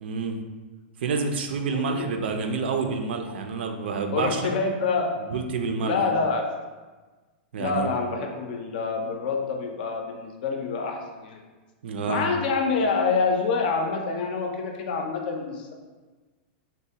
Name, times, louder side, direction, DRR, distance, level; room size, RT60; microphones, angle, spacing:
voice 1, 0.0-0.4 1.0-4.4 5.3-6.0 7.5-7.9 11.8-12.2, right 4 dB, 75° right, 5 dB, 0.4 m, -28 dB
voice 2, 1.7-2.1 4.1-5.2 5.8-6.5 7.6-11.4 12.0-15.7, left 4 dB, 55° left, 3 dB, 0.5 m, -27 dB
3.9 x 2.1 x 2.7 m, 1.3 s
supercardioid pair, 165°, 6 cm